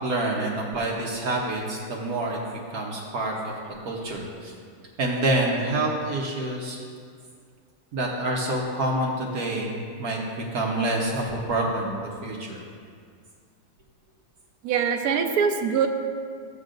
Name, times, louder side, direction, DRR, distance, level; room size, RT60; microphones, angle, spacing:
voice 1, 0.0-4.5 5.0-6.8 7.9-12.6, right 1 dB, 55° right, -2 dB, 1.3 m, -27 dB
voice 2, 14.6-15.9, right 7 dB, 75° right, 5 dB, 0.8 m, -23 dB
14.5 x 8.2 x 2.6 m, 2.1 s
omnidirectional pair, 2.3 m